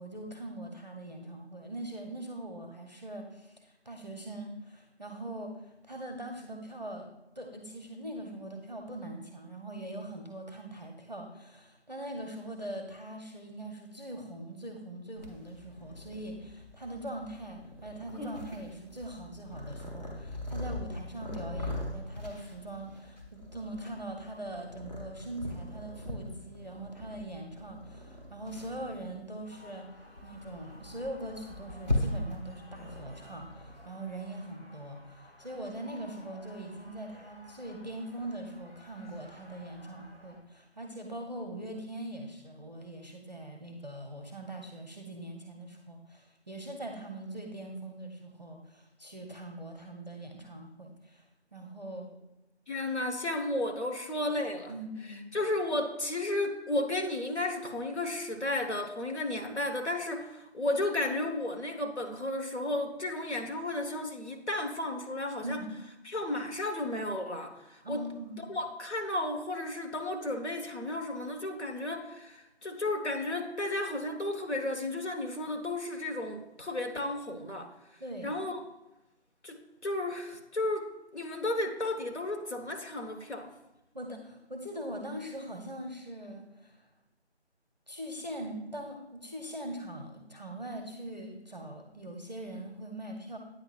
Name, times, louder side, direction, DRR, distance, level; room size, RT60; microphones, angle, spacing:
voice 1, 0.0-7.1 7.4-29.9 30.2-51.2 51.5-52.1 54.7-55.3 65.4-65.7 67.8-68.4 78.0-78.3 83.9-86.8 87.9-93.4, right 1 dB, 40° right, 2 dB, 0.6 m, -42 dB
Purr, 15.2-33.9, left 1 dB, 40° left, 1.3 m, -40 dB
sound 1, 29.4-40.4, left 1 dB, ahead, 1.1 m, -55 dB
voice 2, 52.7-54.7 55.3-65.6 66.0-68.0 68.4-77.7 78.2-78.6 79.4-83.5, left 2 dB, 75° left, 4 dB, 1.2 m, -33 dB
8.8 x 5.7 x 2.4 m, 0.94 s
figure-of-eight pair, 170°, 34 cm